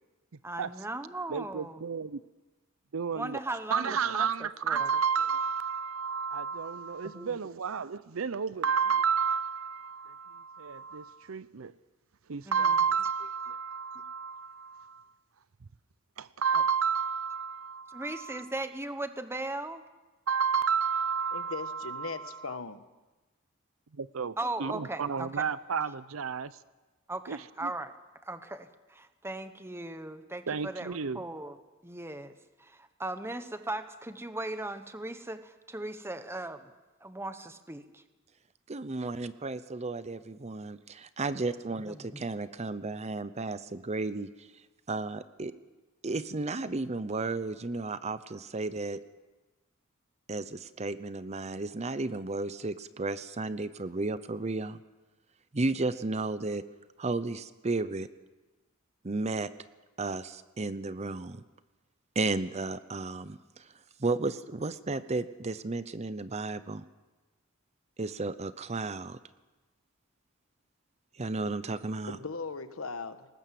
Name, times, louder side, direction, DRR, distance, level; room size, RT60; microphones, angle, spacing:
voice 1, 0.4-1.8 3.1-4.3 4.6-4.9 7.1-7.5 12.5-12.7 17.9-19.8 24.4-25.3 27.1-27.9 28.2-31.6 31.8-36.7 37.0-38.0 41.8-42.2, right 2 dB, 10° right, 10 dB, 1.1 m, -38 dB
voice 2, 1.3-2.2 2.9-3.4 3.7-11.7 12.3-15.1 16.2-18.5 20.3-22.6 23.9-24.3 24.6-26.5 27.3-27.7 30.5-31.2, right 6 dB, 80° right, 16 dB, 0.6 m, -31 dB
voice 3, 21.3-22.8 72.1-73.3, left 4 dB, 90° left, 11 dB, 1.3 m, -38 dB
voice 4, 38.7-44.5 44.9-45.5 46.0-49.0 50.3-54.8 55.5-56.6 57.0-58.1 59.0-59.5 60.0-61.4 62.2-63.7 64.0-66.8 68.0-69.2 71.2-72.2, right 3 dB, 30° right, 14 dB, 0.7 m, -33 dB
20.0 x 19.5 x 7.7 m, 1.2 s
head